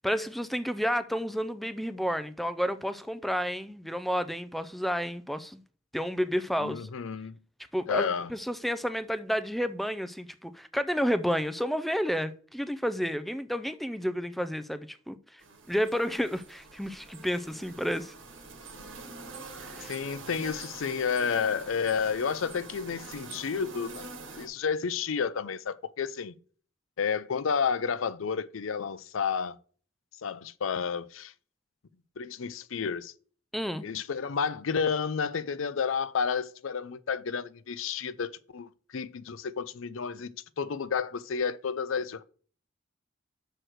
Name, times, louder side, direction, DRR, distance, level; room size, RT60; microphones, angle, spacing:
voice 1, 0.0-5.6 5.9-6.9 7.7-15.4 15.7-18.1 19.6-20.0 33.5-33.9, equal, ahead, 0.4 m, -31 dB
voice 2, 6.6-7.4 7.9-8.3 19.8-24.0 24.4-26.3 27.0-29.6 30.2-31.3 32.2-33.1 33.8-42.2, left 6 dB, 85° left, 0.5 m, -31 dB
sound 1, 15.4-24.5, right 3 dB, 75° right, 1.9 m, -45 dB
6.5 x 4.5 x 6.3 m
head